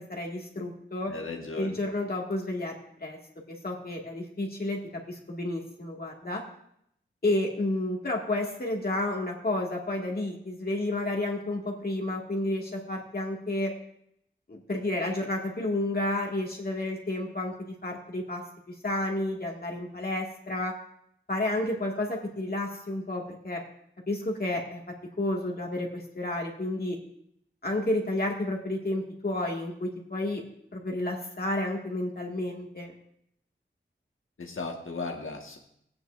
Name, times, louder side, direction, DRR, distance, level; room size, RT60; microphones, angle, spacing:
voice 1, 0.0-1.1 1.6-2.7 3.0-3.2 3.5-4.8 5.1-6.4 7.2-13.7 14.5-18.4 18.8-20.7 21.3-23.6 24.1-24.8 25.2-27.0 27.6-30.4 30.7-32.9, left 1 dB, 50° left, -1 dB, 2.0 m, -31 dB
voice 2, 1.1-1.7 34.4-35.6, left 3 dB, 90° left, 2 dB, 1.6 m, -36 dB
17.5 x 9.5 x 2.6 m, 0.73 s
wide cardioid pair, 95°, 20 cm